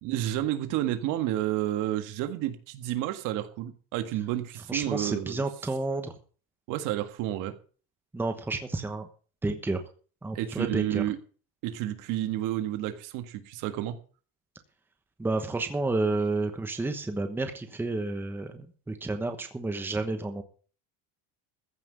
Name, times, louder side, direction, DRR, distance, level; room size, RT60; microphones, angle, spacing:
voice 1, 0.0-5.4 6.7-7.6 10.3-11.2 11.6-14.0, right 13 dB, 60° right, 9 dB, 1.8 m, -30 dB
voice 2, 4.7-6.1 8.1-9.1 9.4-9.8 10.2-11.0 15.2-20.4, right 2 dB, 5° right, 6 dB, 1.1 m, -30 dB
15.0 x 6.0 x 7.8 m, 0.40 s
cardioid pair, 160°, 36 cm